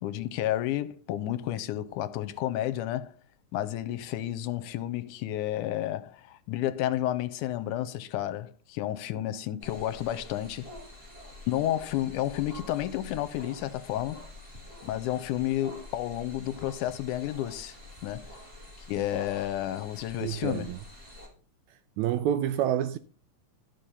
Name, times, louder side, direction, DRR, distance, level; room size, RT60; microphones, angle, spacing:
voice 1, 0.0-3.1 3.5-10.7 11.5-14.3 14.8-17.8 18.0-18.3 18.9-20.8, left 13 dB, 80° left, 2.1 m, -31 dB
sound 1, 9.6-21.3, left 1 dB, 20° right, 2.6 m, -47 dB
voice 2, 20.2-20.8 22.0-23.0, right 11 dB, 80° right, 1.7 m, -28 dB
11.5 x 5.2 x 5.4 m
omnidirectional pair, 3.8 m